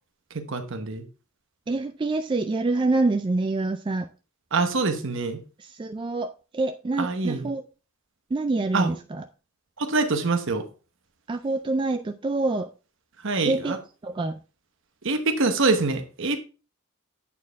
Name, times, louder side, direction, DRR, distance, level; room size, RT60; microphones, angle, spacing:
voice 1, 0.3-1.0 4.5-5.4 7.0-7.5 8.7-8.9 9.8-10.6 13.2-13.8 15.0-16.4, right 3 dB, 60° right, 1.0 m, -25 dB
voice 2, 1.7-4.1 5.6-7.6 8.3-9.2 11.3-12.7 13.4-14.4, right 2 dB, 20° right, 0.3 m, -26 dB
8.4 x 4.5 x 3.4 m
head